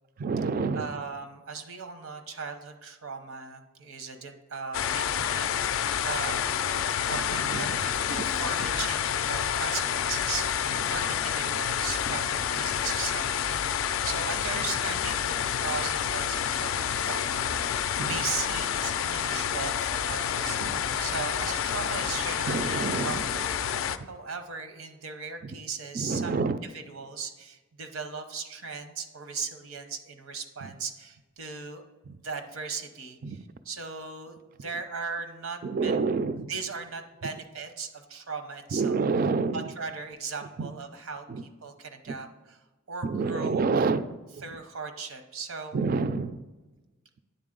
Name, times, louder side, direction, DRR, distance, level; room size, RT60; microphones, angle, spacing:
voice 1, 0.2-0.9 7.1-7.8 8.1-8.4 18.0-18.2 20.6-20.8 22.5-23.2 25.9-26.6 33.2-33.4 35.6-36.5 38.7-39.6 40.6-40.7 41.3-41.4 43.0-44.1 45.7-46.4, right 4 dB, 40° right, 12 dB, 0.3 m, -28 dB
voice 2, 0.7-6.4 6.9-23.8 24.0-31.8 32.2-33.4 33.6-36.0 36.5-39.0 39.5-42.6 42.9-43.6 44.4-45.8, right 5 dB, 80° right, 7 dB, 0.8 m, -38 dB
sound 1, 4.7-24.0, left 8 dB, 70° left, 0.4 m, -29 dB
9.3 x 4.0 x 3.7 m, 1.2 s
head